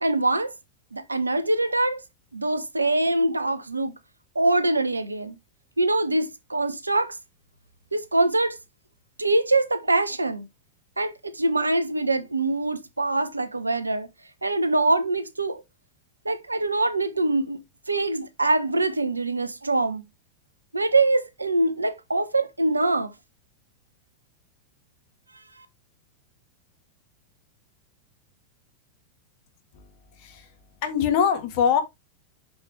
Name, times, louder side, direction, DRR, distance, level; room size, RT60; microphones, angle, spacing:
voice 1, 0.0-0.5 0.9-2.0 2.3-3.9 4.3-5.4 5.8-7.2 7.9-8.6 9.2-10.5 11.0-14.1 14.4-15.6 16.2-17.6 17.9-20.0 20.7-23.1, right 2 dB, 80° right, 0.9 m, -24 dB
voice 2, 30.2-30.5 30.8-31.8, left 7 dB, 45° left, 1.8 m, -23 dB
6.5 x 5.4 x 3.2 m
figure-of-eight pair, 90°, 0 cm